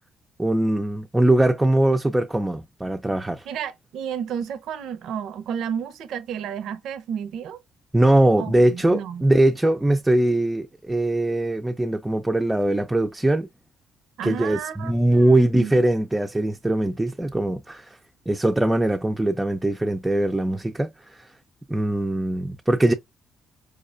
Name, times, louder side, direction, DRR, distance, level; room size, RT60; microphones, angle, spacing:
voice 1, 0.4-3.4 7.9-13.5 14.2-18.0 18.3-21.3 21.7-22.9, right 1 dB, 10° right, 0.3 m, -21 dB
voice 2, 3.5-7.6 8.4-9.2 14.2-15.8, right 8 dB, 80° right, 0.4 m, -32 dB
4.8 x 2.1 x 2.4 m
cardioid pair, 90°, 0 cm